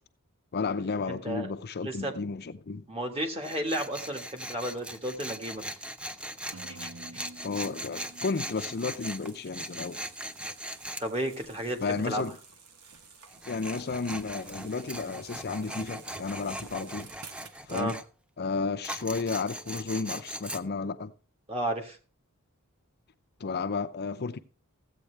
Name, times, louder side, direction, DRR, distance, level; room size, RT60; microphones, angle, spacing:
voice 1, 0.5-2.8 7.4-10.0 11.8-12.4 13.5-17.1 17.7-18.0 18.4-21.1 23.4-24.4, left 4 dB, 45° left, 0.6 m, -32 dB
voice 2, 1.1-1.5 1.8-2.1 2.9-5.7 6.8-6.9 11.0-12.3 17.7-17.9 21.5-22.0, right 1 dB, 25° right, 1.6 m, -33 dB
Tools, 3.4-11.1 13.3-18.0 18.8-20.6, equal, 5° right, 0.5 m, -40 dB
sound 1, 6.5-10.3, right 2 dB, 65° right, 0.9 m, -50 dB
sound 2, 7.4-17.8, right 4 dB, 80° right, 1.2 m, -51 dB
15.0 x 8.2 x 3.3 m
head